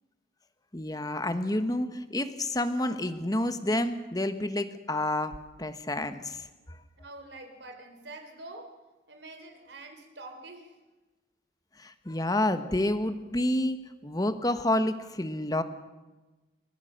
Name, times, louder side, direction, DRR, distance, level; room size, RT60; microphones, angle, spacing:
voice 1, 0.7-6.8 11.8-13.8 14.0-15.6, left 1 dB, 20° left, 10 dB, 1.2 m, -29 dB
voice 2, 7.0-8.7 9.1-10.8, right 2 dB, 75° right, 5 dB, 3.9 m, -46 dB
30.0 x 14.5 x 6.6 m, 1.2 s
head